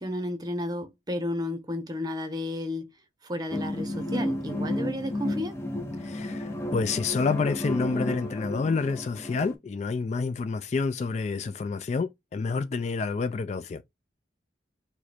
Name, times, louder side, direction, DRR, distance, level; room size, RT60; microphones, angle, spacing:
voice 1, 0.0-2.9 3.2-5.6, left 1 dB, 20° right, 0.9 m, -32 dB
sound 1, 3.5-9.5, left 1 dB, 15° left, 0.7 m, -32 dB
voice 2, 6.0-13.8, left 4 dB, 40° left, 0.3 m, -28 dB
4.9 x 2.2 x 4.2 m
head